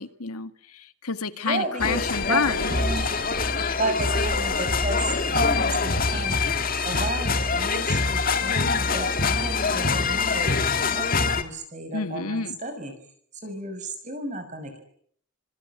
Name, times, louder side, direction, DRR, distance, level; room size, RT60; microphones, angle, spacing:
voice 1, 0.0-2.7 11.9-12.6, left 5 dB, 90° left, 10 dB, 1.9 m, -29 dB
voice 2, 1.4-3.1 3.7-6.4 6.8-11.1 11.4-12.9 13.3-14.8, right 1 dB, 35° right, 6 dB, 6.0 m, -33 dB
sound 1, 1.8-11.4, left 4 dB, 40° left, 2.0 m, -24 dB
25.5 x 23.5 x 9.6 m, 0.65 s
head